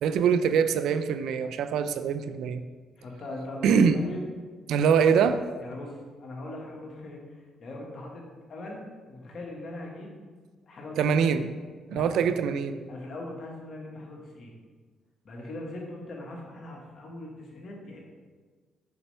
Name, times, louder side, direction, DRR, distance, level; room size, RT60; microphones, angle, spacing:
voice 1, 0.0-2.6 3.6-4.0 4.7-5.4 11.0-11.5 11.9-12.8, right 6 dB, 80° right, 11 dB, 0.4 m, -23 dB
voice 2, 3.0-4.2 5.6-10.1 10.7-11.0 11.9-12.2 12.9-14.5 15.2-18.0, left 2 dB, 55° left, -1 dB, 1.6 m, -40 dB
7.0 x 5.2 x 3.3 m, 1.4 s
cardioid pair, 90°, 0 cm